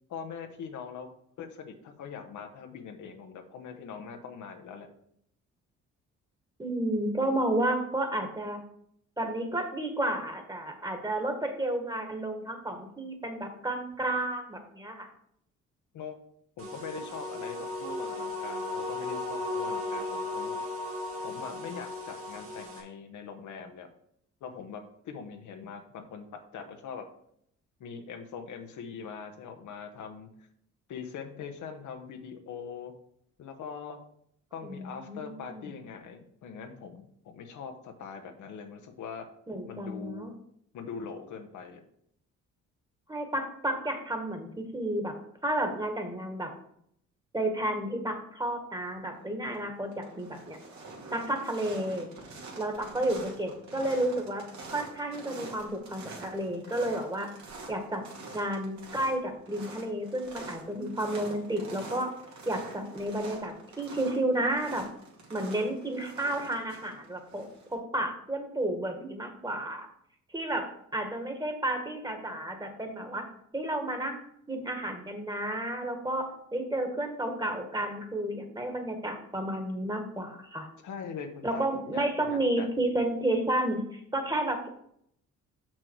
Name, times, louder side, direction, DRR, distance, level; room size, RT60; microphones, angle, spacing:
voice 1, 0.1-1.1 1.4-4.9 15.9-16.2 16.6-20.6 21.2-23.9 24.4-27.1 27.8-30.3 30.9-32.9 33.4-34.0 34.5-39.3 39.7-40.3 40.7-41.8 80.8-82.7, left 6 dB, 75° left, 5 dB, 1.1 m, -42 dB
voice 2, 6.6-8.6 9.2-15.1 34.6-35.7 39.5-40.3 43.1-45.1 45.4-46.5 47.3-50.6 51.1-52.1 52.6-57.3 57.7-58.0 58.3-62.1 62.4-64.8 65.3-67.5 67.7-69.9 70.3-73.2 73.5-74.2 74.5-80.7 81.4-84.7, right 1 dB, 15° right, 5 dB, 1.7 m, -31 dB
sound 1, 16.6-22.8, left 2 dB, 45° right, 2.5 m, -36 dB
sound 2, 49.2-49.6 49.9-67.7, right 3 dB, 65° right, 2.3 m, -46 dB
6.3 x 6.0 x 4.6 m, 0.69 s
cardioid pair, 90°, 30 cm